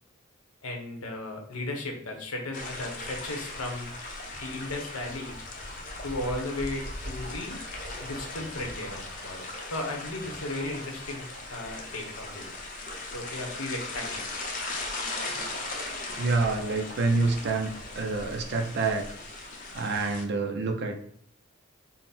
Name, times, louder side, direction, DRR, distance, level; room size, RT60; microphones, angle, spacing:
voice 1, 0.6-3.9 4.4-5.4 6.0-7.6 8.0-12.5 13.1-14.2, left 2 dB, 90° left, 2 dB, 0.9 m, -35 dB
sound 1, 2.5-20.2, left 2 dB, 40° left, 0.6 m, -38 dB
voice 2, 15.6-19.1 19.3-19.4 19.7-21.0, right 3 dB, 50° right, 3 dB, 0.5 m, -28 dB
3.8 x 2.1 x 4.1 m, 0.65 s
head